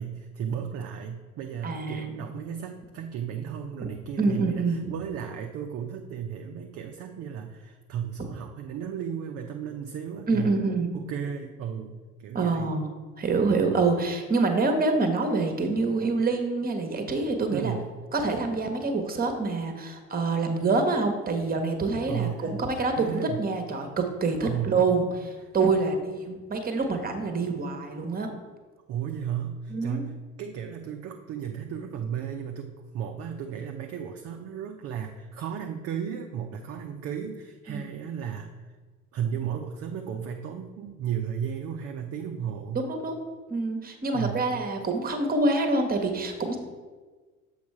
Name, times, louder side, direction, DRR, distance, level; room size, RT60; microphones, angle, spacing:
voice 1, 0.0-10.6 10.9-12.7 17.5-17.9 22.1-22.5 23.0-23.4 24.4-24.8 28.9-38.6 39.1-42.8 44.1-44.5, right 8 dB, 35° right, 3 dB, 0.5 m, -34 dB
voice 2, 1.6-2.3 4.2-4.9 10.3-10.9 12.3-12.9 13.2-17.7 18.1-28.3 29.7-30.1 37.7-37.9 42.7-43.2 43.5-46.6, right 3 dB, 20° right, 5 dB, 1.0 m, -26 dB
7.2 x 4.0 x 4.6 m, 1.4 s
figure-of-eight pair, 55°, 41 cm